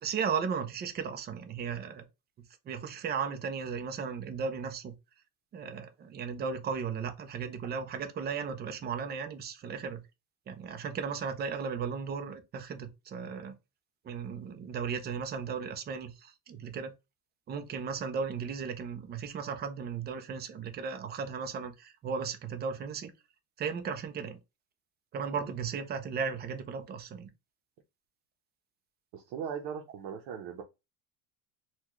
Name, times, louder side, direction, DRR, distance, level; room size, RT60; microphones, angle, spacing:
voice 1, 0.0-2.1 2.7-4.9 5.5-10.0 10.5-13.6 14.0-16.9 17.5-23.1 23.6-24.4 25.1-27.3, right 6 dB, 25° right, 0.4 m, -36 dB
voice 2, 29.1-30.6, right 7 dB, 75° right, 0.7 m, -39 dB
4.0 x 2.2 x 2.9 m
cardioid pair, 170°, 41 cm